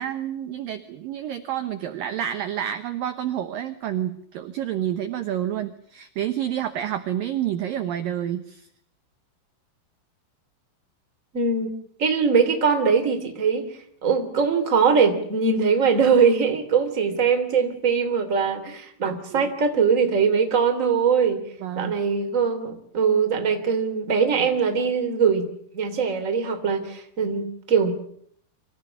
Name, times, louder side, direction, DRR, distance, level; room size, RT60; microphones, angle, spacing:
voice 1, 0.0-8.7 19.0-19.5 21.6-21.9, right 11 dB, 75° right, 8 dB, 2.1 m, -29 dB
voice 2, 11.3-11.7 12.0-13.7 14.0-21.4 21.8-25.5 25.7-28.0, right 6 dB, 20° right, 5 dB, 2.4 m, -21 dB
25.0 x 15.5 x 9.9 m, 0.66 s
omnidirectional pair, 5.5 m